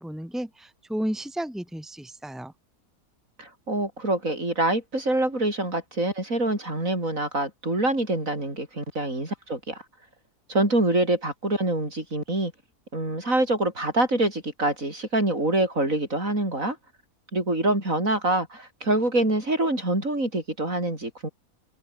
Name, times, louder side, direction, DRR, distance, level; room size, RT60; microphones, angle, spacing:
voice 1, 0.0-2.5, equal, ahead, 3.3 m, -32 dB
voice 2, 3.4-9.8 10.5-12.5 12.9-16.8 17.3-21.3, right 1 dB, 60° right, 7.6 m, -25 dB
omnidirectional pair, 1.6 m